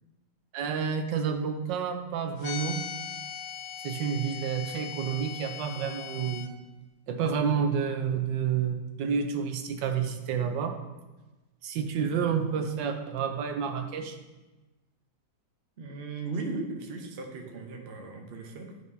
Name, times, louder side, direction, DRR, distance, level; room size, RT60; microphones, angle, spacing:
voice 1, 0.5-2.8 3.8-6.5 7.1-10.7 11.6-14.1, right 7 dB, 85° right, 6 dB, 1.4 m, -29 dB
sound 1, 2.4-6.5, left 8 dB, 85° left, 0.6 m, -39 dB
voice 2, 15.8-18.7, right 3 dB, 50° right, 2 dB, 0.8 m, -37 dB
10.5 x 4.8 x 2.7 m, 1.1 s
omnidirectional pair, 1.9 m